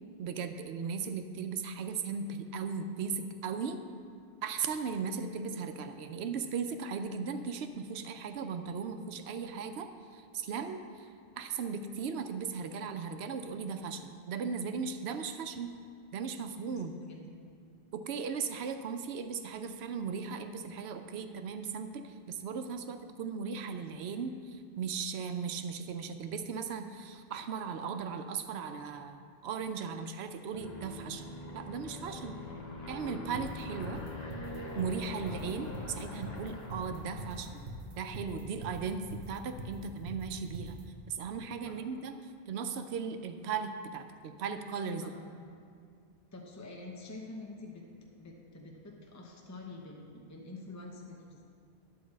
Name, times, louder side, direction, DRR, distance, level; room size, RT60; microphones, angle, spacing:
voice 1, 0.2-3.8 4.4-11.1 11.4-15.7 16.1-16.9 17.9-31.3 31.5-32.4 32.9-34.0 34.7-37.6 38.0-40.8 41.1-42.1 42.5-45.0, right 5 dB, 90° right, 8 dB, 0.9 m, -37 dB
Aircraft, 30.5-37.9, left 2 dB, 45° left, 1.0 m, -43 dB
sound 1, 33.3-40.8, right 1 dB, 70° right, 1.2 m, -43 dB
voice 2, 46.3-47.9 48.2-51.4, left 2 dB, 20° left, 0 dB, 0.7 m, -46 dB
10.0 x 4.7 x 7.4 m, 2.2 s
omnidirectional pair, 1.0 m